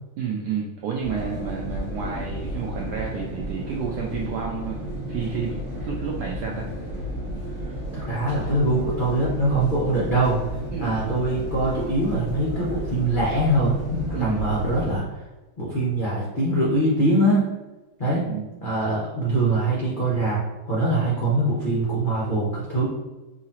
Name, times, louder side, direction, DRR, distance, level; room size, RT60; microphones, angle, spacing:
voice 1, 0.2-4.8 5.1-6.7 7.5-7.7 10.7-11.0 14.1-14.4 18.1-18.5, right 6 dB, 85° right, -1 dB, 0.9 m, -30 dB
sound 1, 1.0-15.0, equal, 25° right, 1.1 m, -33 dB
voice 2, 7.9-10.5 10.8-15.0 15.6-17.4 18.0-18.2 18.6-22.9, right 1 dB, 80° left, -6 dB, 0.4 m, -23 dB
4.8 x 2.8 x 2.8 m, 1.1 s
omnidirectional pair, 2.3 m